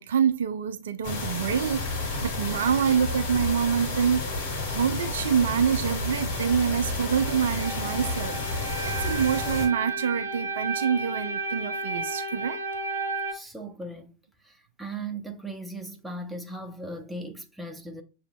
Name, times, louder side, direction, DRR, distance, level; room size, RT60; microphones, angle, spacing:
voice 1, 0.0-4.3 4.6-12.6, right 7 dB, 60° right, 0.4 m, -26 dB
sound 1, 1.0-9.7, left 2 dB, 50° left, 1.3 m, -31 dB
sound 2, 5.9-13.3, right 3 dB, 75° right, 1.0 m, -33 dB
voice 2, 13.3-14.1 14.4-18.0, right 2 dB, 5° right, 0.7 m, -38 dB
6.9 x 2.5 x 2.2 m
figure-of-eight pair, 90°, 0 cm